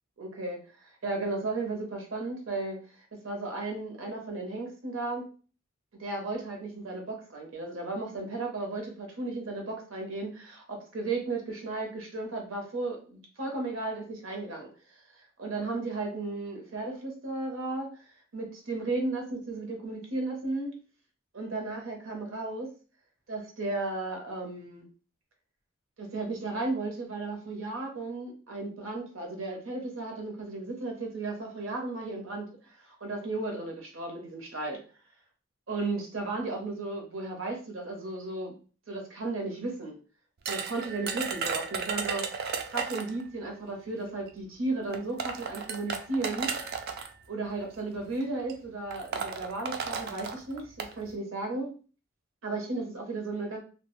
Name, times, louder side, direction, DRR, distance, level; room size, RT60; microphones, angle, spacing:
voice 1, 0.2-2.8 3.1-5.3 6.0-14.7 15.4-17.9 18.3-20.7 21.3-22.7 23.3-24.8 26.0-34.8 35.7-38.5 38.9-40.0 40.5-42.4 42.7-46.5 47.3-51.7 52.4-53.6, right 2 dB, 75° right, 2 dB, 0.8 m, -34 dB
sound 1, 40.5-43.2 44.3-44.4 44.9-47.1 48.0-48.2 48.5-48.6 48.9-50.9, right 5 dB, 50° right, 0.3 m, -34 dB
2.3 x 2.2 x 3.0 m, 0.38 s
head